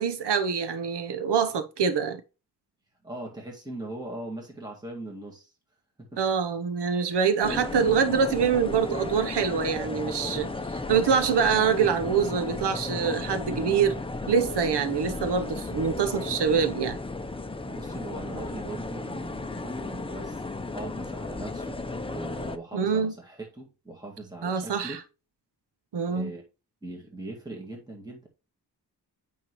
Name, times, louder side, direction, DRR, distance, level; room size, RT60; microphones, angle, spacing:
voice 1, 0.0-2.2 6.2-14.0 14.3-17.0 22.7-23.1 24.4-25.0 25.9-26.3, right 6 dB, 85° right, 0.9 m, -25 dB
voice 2, 3.0-5.5 6.0-6.2 17.7-25.0 26.1-26.4 26.8-28.3, right 2 dB, 10° right, 2.0 m, -40 dB
sound 1, 7.4-22.6, left 3 dB, 15° left, 0.7 m, -34 dB
9.0 x 5.6 x 3.1 m
wide cardioid pair, 120°, 40 cm